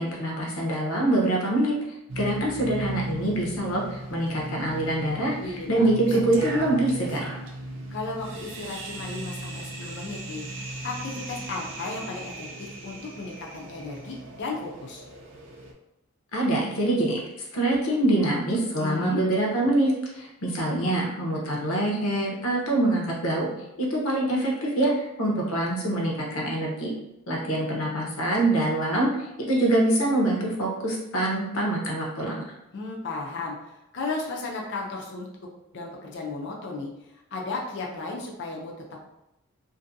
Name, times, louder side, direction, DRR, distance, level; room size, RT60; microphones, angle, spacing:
voice 1, 0.0-1.7 2.2-5.3 5.7-7.3 16.3-17.2 17.5-23.5 23.8-26.9 27.3-29.1 29.5-32.4, right 1 dB, 80° left, -2 dB, 0.8 m, -25 dB
sound 1, 2.1-15.7, right 1 dB, 55° right, 0.5 m, -37 dB
voice 2, 5.4-6.2 7.9-10.4 10.8-15.0 18.8-19.2 32.7-35.3 35.7-38.7, left 3 dB, 55° left, -1 dB, 0.5 m, -34 dB
2.6 x 2.6 x 2.6 m, 0.89 s
head